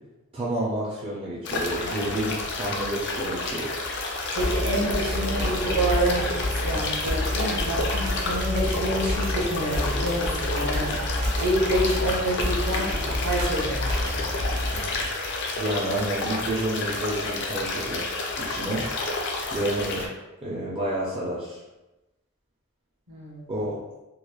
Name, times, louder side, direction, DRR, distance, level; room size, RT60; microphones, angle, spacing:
voice 1, 0.3-3.7 15.6-18.9 19.5-20.1 20.4-21.6 23.5-23.8, right 1 dB, 25° right, -6 dB, 0.4 m, -30 dB
sound 1, 1.5-20.1, left 2 dB, 55° left, 0.3 m, -30 dB
voice 2, 4.3-6.3 6.6-10.9 11.4-12.9 13.2-13.9 23.1-23.6, right 1 dB, 65° right, -5 dB, 0.9 m, -27 dB
sound 2, 4.4-15.1, left 1 dB, 85° right, 0.5 m, -29 dB
2.8 x 2.0 x 2.2 m, 1.0 s
head